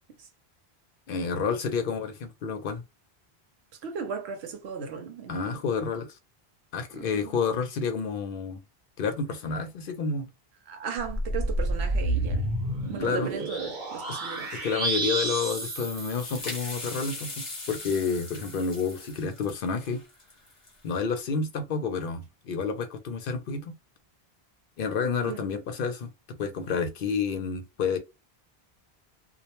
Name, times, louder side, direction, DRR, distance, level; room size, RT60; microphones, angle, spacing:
voice 1, 1.1-2.8 5.3-6.2 6.7-8.6 9.0-10.3 13.0-13.3 14.1-14.2 14.5-20.0 20.8-23.7 24.8-26.1 26.4-28.0, left 5 dB, 65° left, 0.7 m, -29 dB
voice 2, 3.8-5.6 6.9-7.3 10.7-12.5 12.9-14.6 25.3-25.5, right 6 dB, 85° right, 0.9 m, -36 dB
sound 1, 11.0-16.8, right 2 dB, 55° right, 0.9 m, -30 dB
sound 2, 15.4-20.9, left 2 dB, 35° left, 0.9 m, -41 dB
2.2 x 2.1 x 2.9 m
omnidirectional pair, 1.0 m